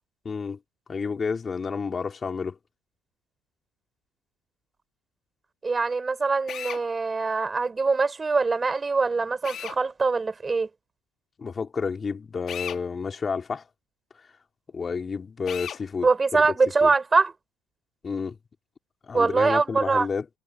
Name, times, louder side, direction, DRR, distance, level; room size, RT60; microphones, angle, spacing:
voice 1, 0.2-0.6 0.9-2.6 11.4-13.6 14.7-16.5 16.8-16.9 18.0-18.4 19.1-20.2, left 5 dB, 30° left, 4.0 m, -30 dB
voice 2, 5.6-10.7 16.0-17.3 19.1-20.1, right 4 dB, 20° right, 4.3 m, -23 dB
Drill, 6.5-6.8 9.4-9.8 12.5-12.8 15.5-15.8, left 9 dB, 45° left, 2.0 m, -35 dB
supercardioid pair, 85°, 0 cm